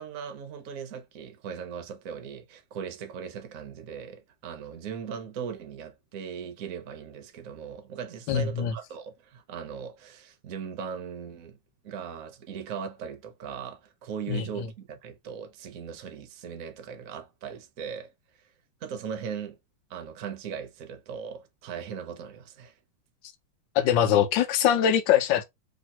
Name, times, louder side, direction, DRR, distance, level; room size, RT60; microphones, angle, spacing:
voice 1, 0.0-11.6 11.8-18.1 18.8-19.6 19.9-22.7, right 7 dB, 55° right, 1.0 m, -39 dB
voice 2, 8.3-8.7 14.3-14.7 23.7-25.4, left 9 dB, 70° left, 1.2 m, -23 dB
3.1 x 3.1 x 4.3 m
omnidirectional pair, 2.3 m